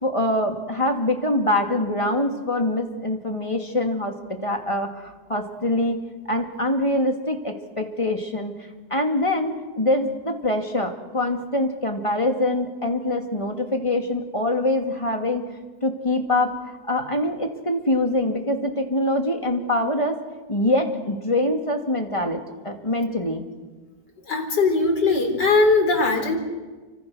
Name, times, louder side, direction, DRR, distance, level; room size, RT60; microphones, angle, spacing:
voice 1, 0.0-6.0 6.3-8.5 8.9-15.4 15.8-20.2 20.5-22.4 22.6-23.4, left 1 dB, 15° left, 3 dB, 2.6 m, -24 dB
voice 2, 24.3-26.4, left 3 dB, 80° left, 4 dB, 4.3 m, -20 dB
29.0 x 25.0 x 6.4 m, 1.3 s
omnidirectional pair, 1.8 m